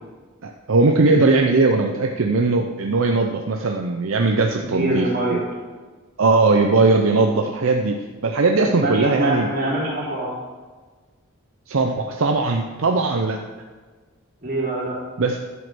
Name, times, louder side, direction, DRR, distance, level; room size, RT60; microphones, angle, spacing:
voice 1, 0.4-5.4 6.2-8.0 8.2-9.5 11.7-13.4 15.2-15.4, right 3 dB, 70° right, 3 dB, 0.6 m, -19 dB
voice 2, 4.6-5.4 8.6-10.3 14.4-15.0, right 1 dB, 45° right, -6 dB, 3.3 m, -24 dB
11.0 x 5.2 x 6.1 m, 1.4 s
head